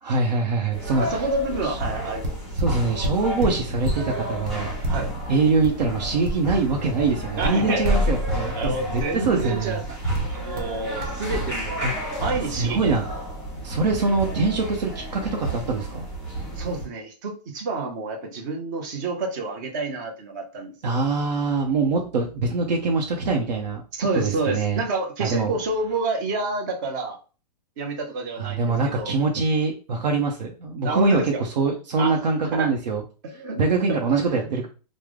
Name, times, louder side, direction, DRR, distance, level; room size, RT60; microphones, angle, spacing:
voice 1, 0.0-1.2 1.7-1.8 2.6-4.7 5.3-9.8 11.8-12.2 12.5-13.0 13.6-16.1 20.8-23.8 24.1-24.8 25.2-25.5 28.4-33.0 33.6-34.7, right 3 dB, 80° right, 0 dB, 0.7 m, -24 dB
sound 1, 0.7-16.9, right 1 dB, ahead, 1.2 m, -30 dB
voice 2, 1.0-2.4 4.9-5.1 7.4-7.8 8.5-11.8 12.1-12.9 16.6-21.0 23.9-27.2 27.8-29.1 30.8-31.4 32.0-32.2 32.5-32.7 33.2-33.6 33.9-34.0 34.4-34.5, right 3 dB, 30° right, 4 dB, 0.5 m, -29 dB
sound 2, 2.2-4.1 4.4-6.7 7.0-8.1 8.6-9.6 10.1-10.7 11.0-11.2, right 1 dB, 55° right, 1.1 m, -30 dB
3.3 x 2.0 x 3.5 m, 0.36 s
hypercardioid pair, 175°, 21 cm